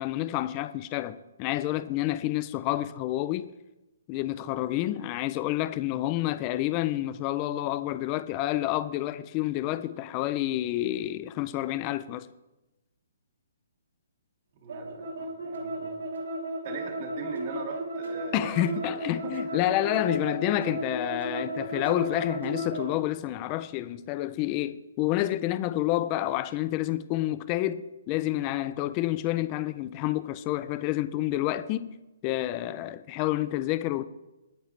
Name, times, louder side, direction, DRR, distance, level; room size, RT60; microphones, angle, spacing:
voice 1, 0.0-3.5 4.1-12.3 18.3-31.9 32.2-34.0, left 14 dB, 20° left, 0.3 m, -29 dB
voice 2, 14.6-16.0 16.6-20.0 22.1-22.2, right 5 dB, 30° right, 1.9 m, -41 dB
sound 1, 14.7-22.9, right 1 dB, 70° right, 2.8 m, -34 dB
21.0 x 9.5 x 3.2 m
hypercardioid pair, 175°, 0 cm